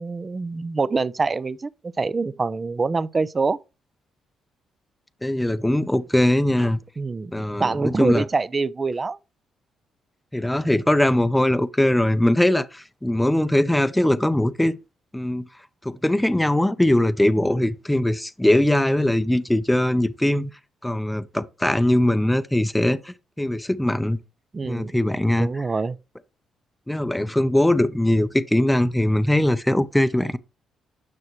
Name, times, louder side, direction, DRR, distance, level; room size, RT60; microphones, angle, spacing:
voice 1, 0.0-3.6 7.0-9.2 17.4-17.5 24.5-24.9 25.4-26.0, right 4 dB, 30° right, 0.5 m, -25 dB
voice 2, 5.2-6.8 7.3-8.2 10.3-14.8 15.1-15.5 15.8-20.5 20.8-24.2 24.6-25.6 26.9-30.4, left 1 dB, 5° left, 0.7 m, -21 dB
9.7 x 6.2 x 3.1 m
cardioid pair, 90°, 0 cm